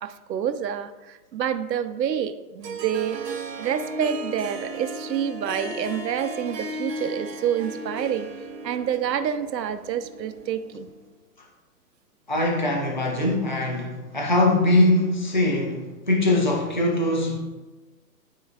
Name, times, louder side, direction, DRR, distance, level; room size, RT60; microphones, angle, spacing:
voice 1, 0.0-3.2 3.6-8.3 8.6-10.9, right 9 dB, 90° right, 0.7 m, -28 dB
Harp, 2.6-11.1, right 2 dB, 70° right, 1.6 m, -35 dB
voice 2, 12.3-17.4, left 1 dB, 30° left, 0.4 m, -22 dB
13.0 x 4.6 x 2.4 m
hypercardioid pair, 175°, 49 cm